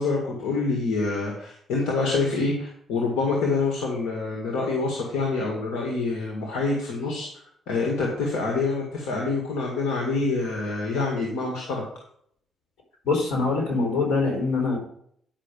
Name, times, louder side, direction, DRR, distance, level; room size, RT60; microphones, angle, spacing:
voice 1, 0.0-7.3 7.7-11.8, left 3 dB, 90° left, 0 dB, 1.9 m, -26 dB
voice 2, 13.0-14.8, left 3 dB, 70° left, -1 dB, 4.6 m, -23 dB
10.0 x 5.7 x 5.3 m, 0.67 s
cardioid pair, 90°, 0 cm